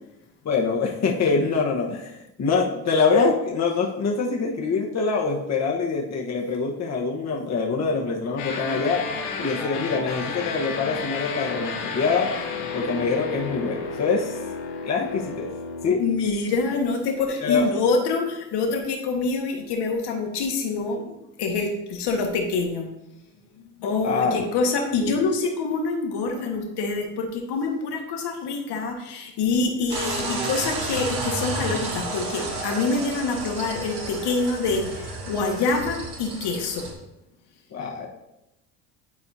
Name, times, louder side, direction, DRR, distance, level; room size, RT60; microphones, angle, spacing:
voice 1, 0.4-9.0 9.4-12.3 12.7-14.4 14.8-15.5 15.8-16.0 17.4-17.7 24.0-24.4 25.0-25.1 37.7-38.1, left 4 dB, 35° left, -1 dB, 1.2 m, -24 dB
sound 1, 8.4-15.9, left 5 dB, 80° left, 1.2 m, -32 dB
voice 2, 16.0-22.9 23.8-36.9, left 4 dB, 60° left, 2 dB, 1.5 m, -26 dB
sound 2, 29.9-36.9, right 2 dB, 60° right, 1.8 m, -31 dB
9.7 x 4.3 x 2.7 m, 0.90 s
supercardioid pair, 75°, 45 cm